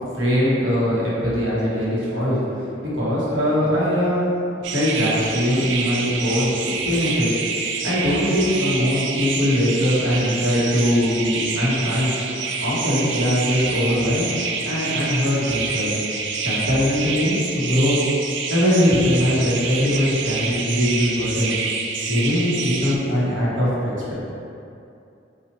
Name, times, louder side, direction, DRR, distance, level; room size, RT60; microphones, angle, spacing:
voice 1, 0.1-2.4 2.8-4.3 4.7-6.5 6.8-7.3 7.8-12.1 12.6-14.3 14.6-15.9 16.4-18.0 18.5-21.5 22.1-24.1, equal, 85° right, -9 dB, 1.1 m, -21 dB
sound 1, 4.6-23.0, right 5 dB, 70° right, 0.3 m, -27 dB
4.2 x 2.4 x 2.9 m, 2.6 s
head